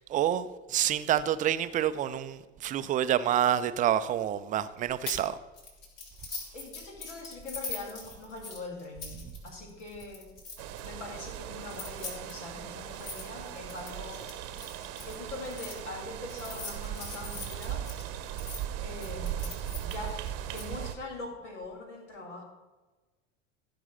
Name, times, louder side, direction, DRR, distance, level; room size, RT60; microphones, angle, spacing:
voice 1, 0.0-5.4, right 11 dB, 20° right, 0.5 m, -28 dB
sound 1, 5.1-5.3 5.6-10.9 11.6-15.7 16.3-18.6 19.0-20.6, left 3 dB, 40° left, 3.9 m, -42 dB
voice 2, 6.2-10.3 10.8-14.5 15.0-17.9 18.8-19.5 19.8-20.2 20.5-22.4, left 2 dB, 70° left, 2.4 m, -42 dB
sound 2, 10.6-21.0, right 11 dB, 40° right, 0.9 m, -38 dB
15.5 x 5.4 x 5.7 m
figure-of-eight pair, 75°, 37 cm